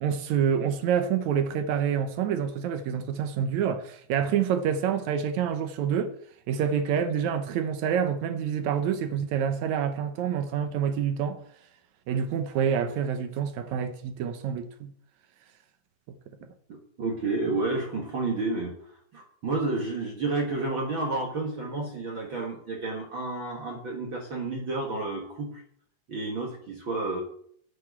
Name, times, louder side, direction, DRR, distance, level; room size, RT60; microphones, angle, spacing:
voice 1, 0.0-6.1 6.5-11.4 12.1-14.9, right 8 dB, 75° right, 2.2 m, -27 dB
voice 2, 16.7-18.7 19.1-25.6 26.1-27.2, right 3 dB, 45° right, 2.0 m, -30 dB
8.1 x 7.7 x 8.7 m
omnidirectional pair, 3.5 m